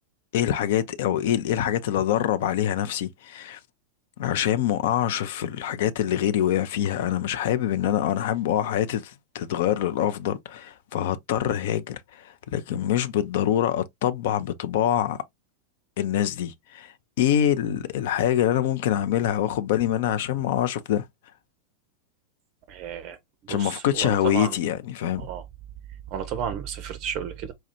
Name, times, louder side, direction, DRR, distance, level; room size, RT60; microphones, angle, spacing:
voice 1, 0.3-3.6 4.2-15.2 16.0-21.1 23.5-25.3, left 11 dB, 55° left, 0.4 m, -25 dB
voice 2, 22.7-23.2 23.5-24.6 25.2-25.4 26.1-27.5, right 8 dB, 40° right, 0.5 m, -32 dB
4.3 x 2.4 x 2.7 m
figure-of-eight pair, 90°, 0 cm